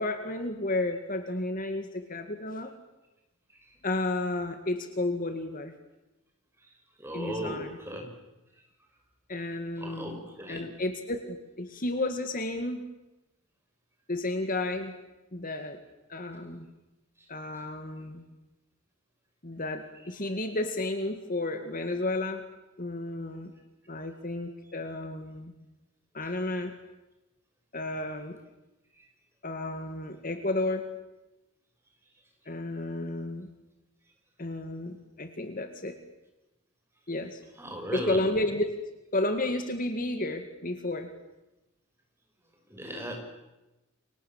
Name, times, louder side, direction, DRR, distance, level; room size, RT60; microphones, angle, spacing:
voice 1, 0.0-2.7 3.8-5.7 7.1-7.8 9.3-12.8 14.1-14.9 15.3-15.8 16.1-16.7 17.3-18.2 19.4-22.4 22.8-23.5 23.9-25.5 26.1-26.7 27.7-28.4 29.4-30.9 32.5-33.5 34.4-36.0 37.1-37.4 37.9-38.7 39.1-41.1, left 2 dB, 40° left, 7 dB, 2.0 m, -32 dB
voice 2, 7.0-8.1 9.8-10.7 37.6-38.2 42.7-43.2, equal, 10° right, 2 dB, 6.1 m, -36 dB
29.5 x 25.0 x 7.4 m, 1.0 s
head